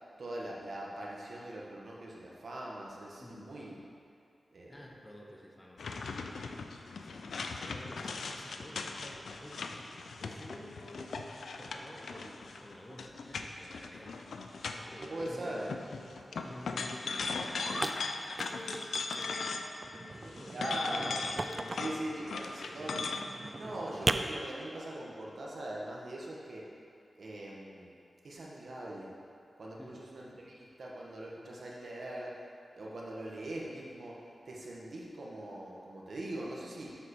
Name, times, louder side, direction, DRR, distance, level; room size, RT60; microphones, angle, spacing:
voice 1, 0.2-3.7 4.5-4.8 7.5-7.6 15.1-15.7 20.5-21.1 21.8-23.1 23.6-26.7 27.1-27.9 28.2-29.1 29.6-32.3 32.7-34.2 34.5-36.9, right 1 dB, 70° right, -3 dB, 1.4 m, -41 dB
voice 2, 3.2-3.5 4.7-6.4 6.9-9.9 10.2-11.1 11.6-14.2 14.5-15.6 16.3-20.7 21.4-22.4 23.6-23.8 29.8-30.0, left 1 dB, 20° left, -1 dB, 1.0 m, -51 dB
sound 1, 5.8-15.3 15.6-19.9 20.2-23.2, left 4 dB, 90° left, 0.4 m, -39 dB
sound 2, 9.1-10.6 10.8-12.2 12.6-13.1 13.4-13.7 14.0-14.1 14.4-14.5 14.9-19.4 19.8-22.1 22.7-24.1, right 2 dB, 40° right, 0.4 m, -41 dB
7.7 x 6.4 x 4.3 m, 2.5 s
cardioid pair, 60°, 0 cm